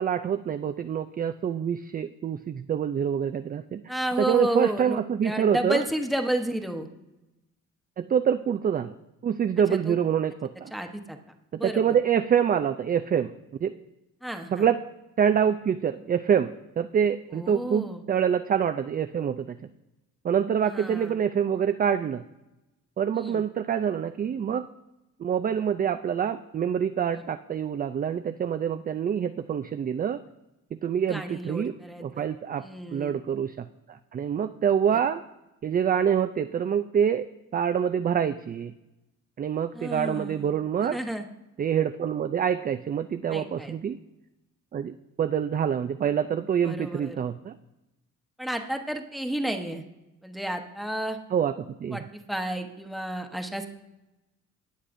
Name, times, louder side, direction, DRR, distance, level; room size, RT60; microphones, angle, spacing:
voice 1, 0.0-3.8 4.2-5.8 8.0-8.9 9.2-10.7 11.6-13.3 13.6-13.7 14.5-14.8 15.2-19.6 20.2-22.2 23.0-24.7 25.2-30.2 30.8-31.7 32.0-32.7 32.9-35.2 35.6-37.3 37.5-38.7 39.4-41.0 41.6-44.0 44.7-47.5 51.3-52.1, right 8 dB, 30° right, 9 dB, 0.4 m, -26 dB
voice 2, 3.9-6.9 9.7-10.0 10.7-11.2 11.5-11.8 14.2-14.7 17.3-18.0 20.6-21.2 23.2-23.4 31.1-32.3 32.6-33.2 34.9-35.0 39.7-40.5 40.8-41.2 43.3-43.7 46.6-47.2 48.4-49.8 50.2-51.2 51.9-53.7, right 1 dB, ahead, 4 dB, 1.0 m, -31 dB
18.5 x 6.6 x 2.6 m, 0.97 s
cardioid pair, 90°, 30 cm